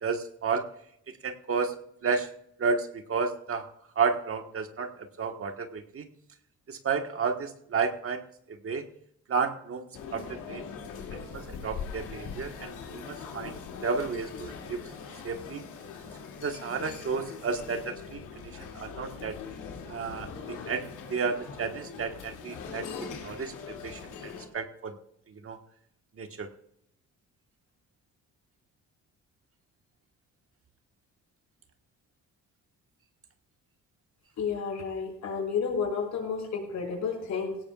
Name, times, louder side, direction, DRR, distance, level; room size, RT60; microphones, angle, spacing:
voice 1, 0.0-0.6 1.2-1.7 2.0-2.3 2.6-3.7 3.9-6.1 6.7-8.8 9.3-9.8 10.1-10.7 11.1-13.6 13.8-14.8 15.2-15.6 16.4-19.4 19.9-22.9 23.2-23.5 23.8-25.0 25.3-25.6 26.2-26.5, right 5 dB, 45° right, 5 dB, 1.6 m, -32 dB
sound 1, 9.9-24.5, left 6 dB, 90° left, 2.7 m, -41 dB
voice 2, 34.4-37.6, left 6 dB, 65° left, 0 dB, 5.5 m, -31 dB
18.0 x 17.0 x 2.5 m, 0.73 s
cardioid pair, 90°, 30 cm